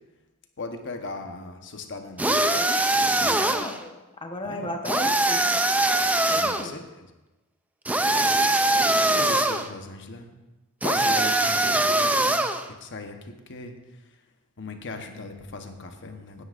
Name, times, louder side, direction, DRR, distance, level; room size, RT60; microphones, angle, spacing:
voice 1, 0.6-2.4 3.2-3.5 4.4-4.7 6.3-7.1 8.9-10.3 10.8-14.2 14.6-16.4, left 3 dB, 55° left, 5 dB, 1.1 m, -38 dB
voice 2, 2.2-2.8 3.2-5.6 6.3-6.7, left 1 dB, 25° left, 3 dB, 1.1 m, -34 dB
sound 1, 2.2-3.8 4.8-6.6 7.9-9.7 10.8-12.6, right 2 dB, 5° right, 0.4 m, -22 dB
17.0 x 9.8 x 2.5 m, 1.1 s
head